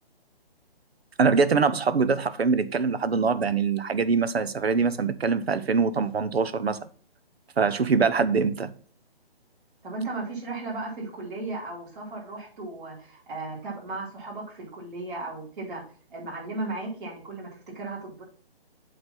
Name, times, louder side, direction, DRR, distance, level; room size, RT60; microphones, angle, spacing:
voice 1, 1.2-6.8 7.6-8.7, right 5 dB, 80° right, 0.9 m, -23 dB
voice 2, 9.8-15.8 16.1-18.2, right 2 dB, 55° right, 4.6 m, -35 dB
7.7 x 4.1 x 5.7 m
hypercardioid pair, 155°, 31 cm